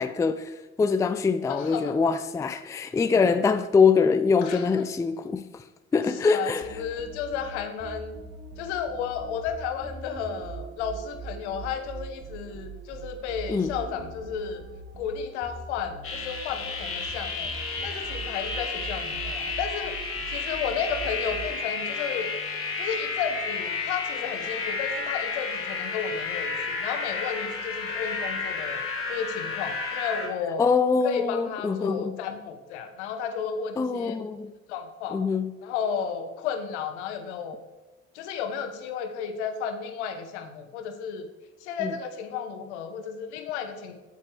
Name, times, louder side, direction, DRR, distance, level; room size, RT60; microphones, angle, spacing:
voice 1, 0.0-5.6 5.9-6.6 13.5-13.8 30.6-32.2 33.8-34.5 35.1-35.5 41.8-41.9, left 5 dB, 10° left, 0.4 m, -24 dB
voice 2, 1.5-2.0 4.4-4.9 6.2-8.1 8.6-14.6 15.0-17.5 17.8-19.9 20.3-22.3 22.8-28.8 29.1-30.6 31.0-34.2 34.7-35.2 35.6-37.6 38.1-41.2 41.6-43.9, left 7 dB, 70° left, 1.0 m, -33 dB
sound 1, 6.6-21.8, right 4 dB, 25° right, 1.1 m, -41 dB
sound 2, 16.0-30.3, left 4 dB, 35° left, 1.6 m, -32 dB
8.4 x 8.2 x 3.3 m
figure-of-eight pair, 50°, 36 cm